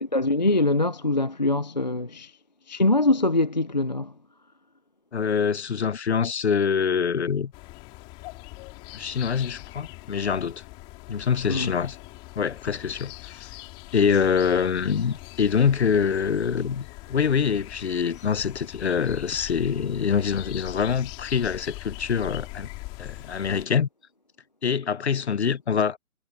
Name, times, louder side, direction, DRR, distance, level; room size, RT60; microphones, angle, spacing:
voice 1, 0.0-2.3 2.7-4.1 11.5-11.7, left 2 dB, 30° left, 0.5 m, -23 dB
voice 2, 5.1-7.5 8.9-10.6 11.1-12.0 12.4-13.5 13.9-22.7 23.0-23.9 24.6-26.0, left 6 dB, 50° left, 0.9 m, -25 dB
sound 1, 7.5-23.7, left 22 dB, 10° left, 3.1 m, -42 dB
hypercardioid pair, 165°, 43 cm